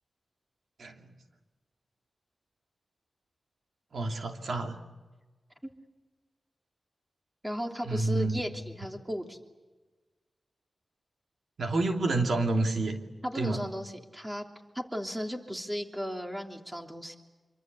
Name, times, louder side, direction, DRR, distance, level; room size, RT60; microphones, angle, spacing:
voice 1, 3.9-4.8 7.8-8.4 11.6-13.0 13.3-13.6, right 2 dB, 80° right, 3 dB, 2.8 m, -28 dB
voice 2, 7.4-9.4 13.2-14.4 14.7-17.2, equal, 10° right, 3 dB, 3.1 m, -35 dB
26.5 x 24.5 x 8.2 m, 1.2 s
wide cardioid pair, 85°, 0 cm